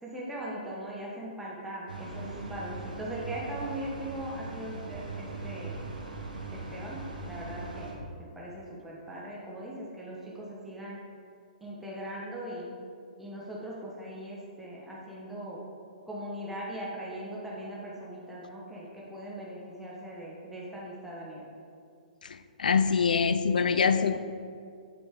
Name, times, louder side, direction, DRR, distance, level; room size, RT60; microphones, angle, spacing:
voice 1, 0.0-5.8 6.5-11.0 11.6-12.8 13.2-15.7 16.1-21.5, right 1 dB, 5° right, -6 dB, 1.5 m, -40 dB
sound 1, 1.9-7.9, right 3 dB, 80° right, 1.5 m, -40 dB
voice 2, 22.2-24.2, left 5 dB, 75° left, 11 dB, 0.5 m, -25 dB
7.7 x 6.8 x 3.8 m, 2.3 s
hypercardioid pair, 130°, 5 cm